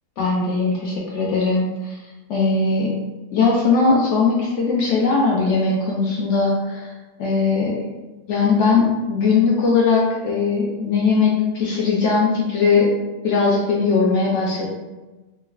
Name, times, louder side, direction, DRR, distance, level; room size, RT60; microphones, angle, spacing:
voice 1, 0.2-2.0 2.3-2.9 3.3-6.9 7.2-7.7 8.3-12.9 13.2-14.7, left 4 dB, 85° left, -3 dB, 0.6 m, -19 dB
4.5 x 2.0 x 2.3 m, 1.2 s
omnidirectional pair, 1.8 m